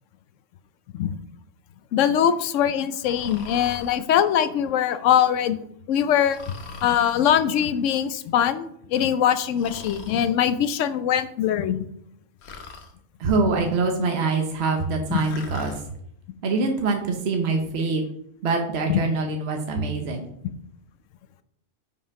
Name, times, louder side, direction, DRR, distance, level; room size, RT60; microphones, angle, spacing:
voice 1, 1.9-5.6 5.9-6.4 6.8-11.8 15.1-15.2 18.9-19.0, left 9 dB, 85° left, 12 dB, 0.9 m, -22 dB
Breathing, 3.0-4.0 6.3-7.3 9.6-10.3 12.4-12.9 15.1-15.8, left 4 dB, 65° left, 1.1 m, -41 dB
voice 2, 13.2-15.7 16.4-18.0 18.4-20.2, right 3 dB, 60° right, 3 dB, 1.0 m, -24 dB
5.5 x 5.2 x 4.7 m, 0.72 s
omnidirectional pair, 1.3 m